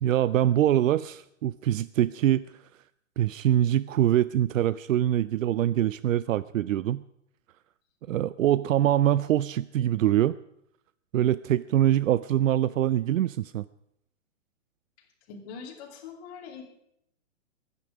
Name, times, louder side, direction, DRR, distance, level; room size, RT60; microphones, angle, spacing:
voice 1, 0.0-2.4 3.2-7.0 8.1-10.4 11.1-13.6, right 12 dB, 80° right, 17 dB, 0.6 m, -24 dB
voice 2, 15.3-16.6, left 6 dB, 30° left, -1 dB, 3.0 m, -42 dB
22.5 x 9.8 x 5.0 m, 0.77 s
hypercardioid pair, 165°, 39 cm